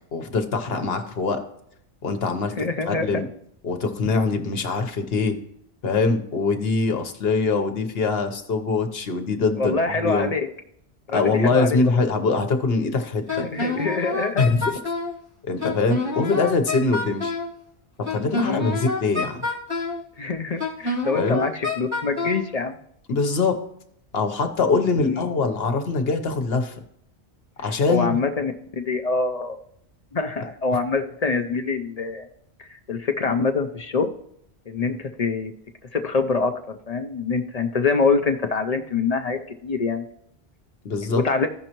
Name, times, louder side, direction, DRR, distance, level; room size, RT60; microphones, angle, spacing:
voice 1, 0.1-1.4 2.0-3.3 3.6-5.4 5.8-10.3 11.1-13.5 14.4-14.7 15.5-17.3 18.1-19.4 21.1-21.4 23.1-23.6 24.1-26.7 27.6-28.2 40.8-41.2, left 4 dB, 70° left, 6 dB, 1.2 m, -23 dB
voice 2, 2.6-3.2 9.6-10.4 11.1-12.0 13.4-14.4 18.4-18.7 20.2-22.8 25.0-25.2 27.9-29.6 30.1-32.3 32.6-34.1 34.7-35.5 35.9-40.1 41.2-41.5, left 4 dB, 45° left, 7 dB, 0.6 m, -25 dB
Wind instrument woodwind instrument, 13.3-15.1 15.6-17.5 18.0-20.0 20.6-22.4, left 3 dB, 25° right, 2.1 m, -27 dB
15.0 x 5.4 x 3.0 m, 0.70 s
omnidirectional pair, 1.1 m